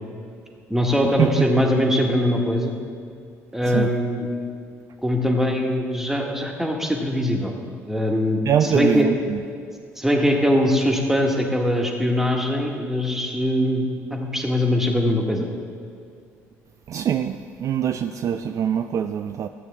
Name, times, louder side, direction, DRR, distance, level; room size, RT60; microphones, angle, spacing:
voice 1, 0.7-2.7 3.5-4.3 5.0-7.5 7.9-9.1 10.0-15.5, left 1 dB, 5° right, 1 dB, 1.5 m, -22 dB
voice 2, 8.5-9.4 16.9-19.5, right 9 dB, 45° right, 8 dB, 0.3 m, -23 dB
12.5 x 8.1 x 3.5 m, 2.3 s
figure-of-eight pair, 50°, 8 cm